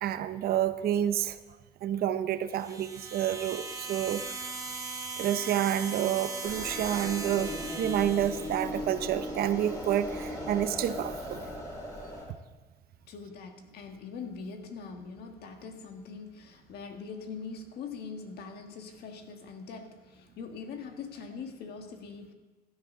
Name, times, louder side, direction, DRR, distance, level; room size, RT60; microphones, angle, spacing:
voice 1, 0.0-1.4 1.8-4.5 5.2-11.4, right 10 dB, 65° right, 12 dB, 0.7 m, -29 dB
sound 1, 2.5-8.7, right 3 dB, 20° right, 1.7 m, -39 dB
sound 2, 6.4-12.2, equal, 20° left, 5.1 m, -38 dB
voice 2, 13.1-22.3, left 5 dB, 70° left, 5 dB, 1.6 m, -42 dB
16.0 x 10.5 x 3.8 m, 1.2 s
cardioid pair, 110°, 17 cm